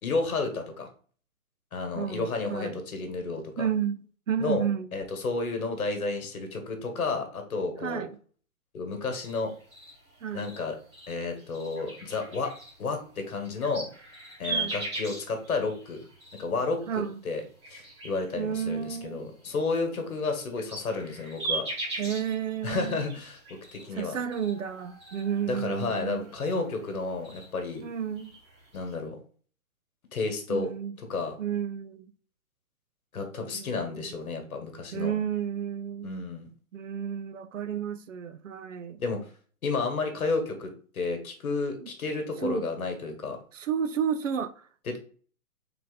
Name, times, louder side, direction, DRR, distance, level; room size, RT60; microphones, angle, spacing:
voice 1, 0.0-0.9 1.7-3.7 4.4-4.6 4.9-8.0 8.7-9.5 10.3-10.8 11.1-12.5 12.8-13.9 14.4-16.0 16.4-17.4 17.7-21.7 22.6-24.2 25.5-27.8 28.7-29.2 30.1-30.7 31.1-31.4 33.1-35.1 36.0-36.5 39.0-39.3 39.6-43.4 44.9-45.0, left 3 dB, 70° left, 1.3 m, -31 dB
voice 2, 1.9-2.8 3.6-4.9 7.8-8.1 10.2-10.6 14.5-14.8 16.9-17.2 18.3-19.2 22.0-23.0 23.9-26.3 27.8-28.3 30.5-31.0 31.4-32.1 33.5-34.2 34.9-36.1 36.7-39.0 41.8-41.9 42.4-42.7 43.5-44.7, right 8 dB, 60° right, 0.5 m, -32 dB
sound 1, 9.2-17.1 17.4-19.6 20.1-28.9, right 3 dB, 20° right, 1.4 m, -40 dB
3.8 x 2.8 x 3.8 m
hypercardioid pair, 180°, 43 cm